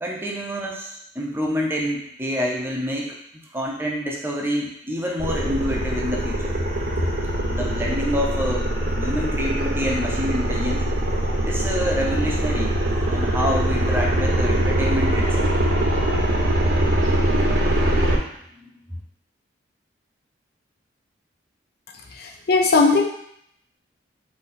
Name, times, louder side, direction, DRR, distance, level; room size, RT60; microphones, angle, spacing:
voice 1, 0.0-3.2 3.5-6.5 7.0-7.1 7.5-10.8 11.4-15.5 16.9-17.0 18.5-19.0, equal, 10° right, -2 dB, 0.6 m, -27 dB
sound 1, 5.2-18.2, right 1 dB, 55° right, 0.7 m, -22 dB
voice 2, 22.1-23.0, left 4 dB, 55° left, 3 dB, 0.5 m, -18 dB
3.9 x 2.8 x 4.2 m, 0.71 s
head